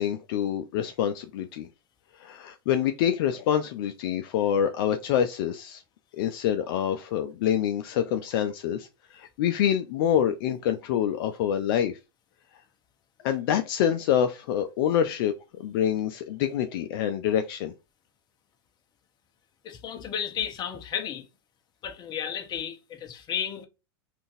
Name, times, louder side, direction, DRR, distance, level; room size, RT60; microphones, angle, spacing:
voice 1, 0.0-1.7 2.2-5.8 6.1-11.9 13.2-17.7, left 9 dB, 60° left, 0.4 m, -26 dB
voice 2, 19.6-21.3 21.8-23.7, left 8 dB, 30° left, 0.8 m, -33 dB
3.7 x 2.4 x 2.6 m
hypercardioid pair, 105°, 13 cm